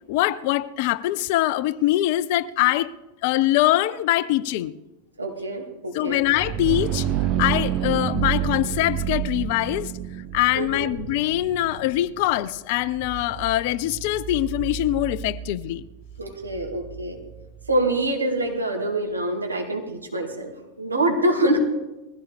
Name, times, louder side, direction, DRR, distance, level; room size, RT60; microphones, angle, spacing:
voice 1, 0.1-2.9 3.2-4.7 5.9-7.1 7.4-9.9 10.3-15.8, left 15 dB, 50° left, 0.5 m, -23 dB
voice 2, 5.2-6.2 10.5-10.9 16.2-17.2 17.7-20.5 20.8-21.6, right 1 dB, 80° right, 2.6 m, -25 dB
sound 1, 6.1-17.8, right 10 dB, 35° right, 0.8 m, -30 dB
20.5 x 15.5 x 3.5 m
figure-of-eight pair, 90°, 0 cm